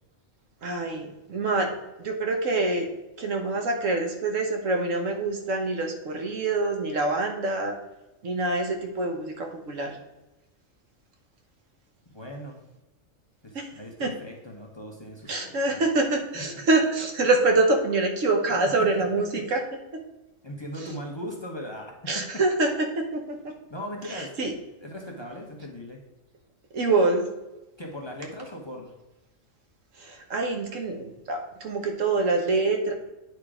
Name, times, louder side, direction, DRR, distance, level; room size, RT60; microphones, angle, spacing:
voice 1, 0.6-1.7 2.0-2.9 3.2-7.8 8.2-10.0 13.5-13.7 14.0-14.1 15.3-19.6 22.1-22.7 23.0-23.4 24.1-24.5 26.7-27.2 30.0-32.9, right 2 dB, 75° right, 3 dB, 1.4 m, -25 dB
voice 2, 12.1-12.6 13.4-15.8 16.3-16.4 20.4-22.2 23.7-24.5 24.8-26.0 27.8-28.9, equal, 20° left, -1 dB, 1.0 m, -39 dB
9.0 x 3.7 x 4.9 m, 1.0 s
omnidirectional pair, 1.4 m